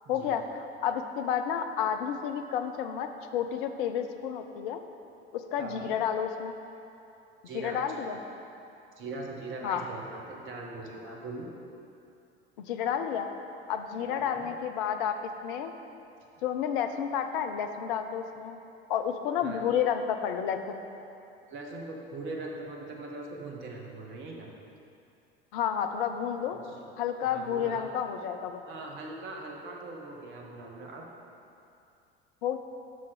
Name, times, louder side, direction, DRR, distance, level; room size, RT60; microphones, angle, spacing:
voice 1, 0.1-4.8 5.3-6.6 7.5-8.2 9.6-9.8 12.6-13.3 13.7-15.2 15.4-15.7 16.4-18.6 18.9-20.8 25.5-26.6 27.0-28.6 32.4-32.6, left 8 dB, 55° left, 7 dB, 0.6 m, -31 dB
voice 2, 5.6-5.9 7.4-8.2 9.0-11.5 14.1-14.5 19.4-19.7 21.5-24.5 26.7-26.8 27.2-27.9 28.7-31.0, right 2 dB, 40° right, 0 dB, 1.3 m, -41 dB
6.0 x 5.9 x 6.5 m, 2.7 s
figure-of-eight pair, 70°, 31 cm